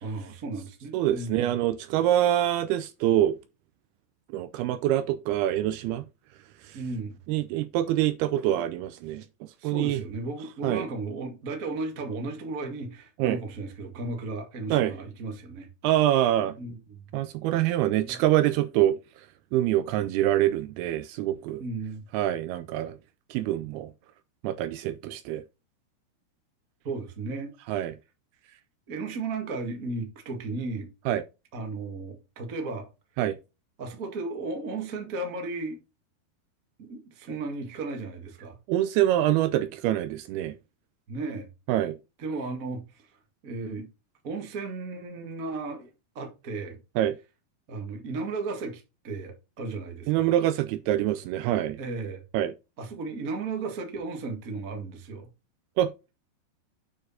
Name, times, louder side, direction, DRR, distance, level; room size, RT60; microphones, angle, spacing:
voice 1, 0.0-1.5 6.7-7.2 9.6-15.7 16.1-16.3 16.6-17.0 18.0-18.2 21.6-22.0 26.8-27.5 28.9-30.9 31.5-32.9 33.8-35.8 36.8-38.6 41.1-41.5 42.2-43.1 43.4-43.9 44.2-45.9 46.1-46.8 47.7-50.3 51.8-52.2 52.8-55.3, right 3 dB, 55° right, 0.9 m, -35 dB
voice 2, 0.9-3.4 4.3-6.0 7.3-9.3 9.6-10.0 10.6-10.9 13.2-13.4 14.7-14.9 15.8-16.6 17.1-19.0 19.5-21.6 22.1-23.0 23.3-23.9 24.4-25.4 27.7-27.9 31.1-31.2 33.2-33.4 38.7-40.6 41.7-42.0 47.0-47.2 50.1-51.8 52.3-52.5 55.8-55.9, right 13 dB, 80° right, 2.3 m, -25 dB
9.2 x 4.3 x 4.1 m
omnidirectional pair, 4.8 m